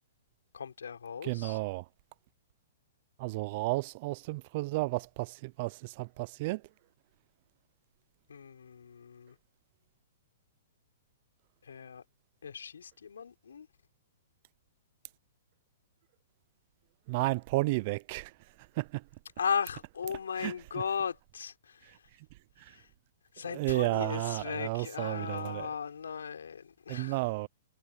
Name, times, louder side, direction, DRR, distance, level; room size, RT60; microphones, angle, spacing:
voice 1, 0.5-1.6 8.3-9.3 11.6-12.0 12.4-13.7 19.4-22.0 22.7-22.9 23.3-27.3, left 6 dB, 90° left, 5.7 m, -37 dB
voice 2, 1.2-1.8 3.2-6.6 17.1-18.3 18.8-19.0 20.4-20.5 23.5-25.7 26.9-27.5, right 22 dB, 45° right, 0.6 m, -32 dB
hypercardioid pair, 140°, 0 cm